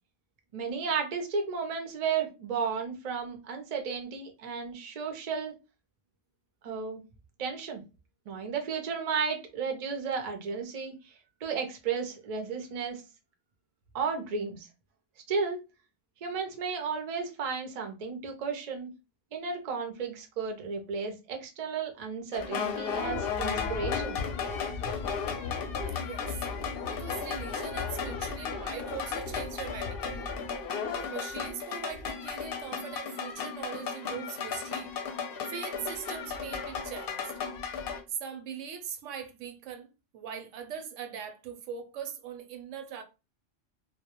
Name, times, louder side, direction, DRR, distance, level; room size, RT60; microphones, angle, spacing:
voice 1, 0.5-5.5 6.6-7.0 7.4-7.8 8.3-11.1 11.4-13.0 13.9-14.7 15.3-15.7 16.2-18.9 19.3-24.2, right 5 dB, 50° right, 0.5 m, -33 dB
sound 1, 22.3-38.0, left 6 dB, 60° left, 0.6 m, -34 dB
voice 2, 26.0-26.4 26.9-30.2 30.9-34.9 35.5-37.2 38.1-43.0, right 7 dB, 85° right, 0.9 m, -41 dB
2.2 x 2.0 x 2.8 m
omnidirectional pair, 1.2 m